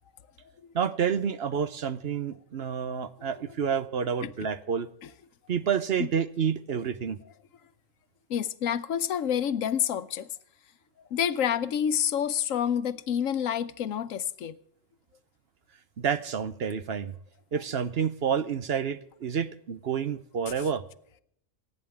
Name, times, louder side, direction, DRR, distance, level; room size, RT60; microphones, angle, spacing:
voice 1, 0.7-4.9 5.5-7.2 16.0-17.1 17.5-20.8, right 7 dB, 55° right, 1.0 m, -29 dB
voice 2, 2.9-3.6 4.2-4.3 5.0-5.1 6.0-6.1 8.3-10.3 11.1-14.6 20.6-20.7, left 9 dB, 85° left, 1.1 m, -29 dB
28.0 x 9.6 x 3.5 m
omnidirectional pair, 1.3 m